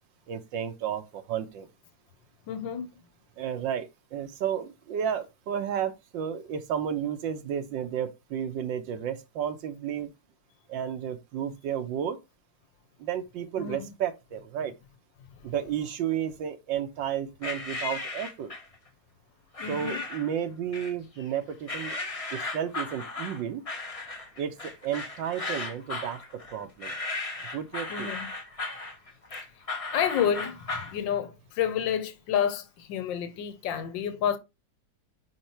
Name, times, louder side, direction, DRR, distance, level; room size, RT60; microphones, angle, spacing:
voice 1, 0.3-1.7 3.4-10.1 10.7-12.2 13.0-14.7 15.4-18.5 19.7-22.0 22.3-23.6 24.4-26.2 26.5-26.9 27.5-28.1, right 9 dB, 80° right, 1.5 m, -32 dB
voice 2, 2.5-2.9 13.6-13.9 19.6-20.0 27.9-28.3 29.9-34.4, left 8 dB, 75° left, 1.6 m, -29 dB
sound 1, 17.4-18.7 19.5-20.3 20.7-21.3 21.7-31.0, left 3 dB, 25° left, 0.8 m, -36 dB
5.7 x 4.5 x 4.3 m
omnidirectional pair, 2.0 m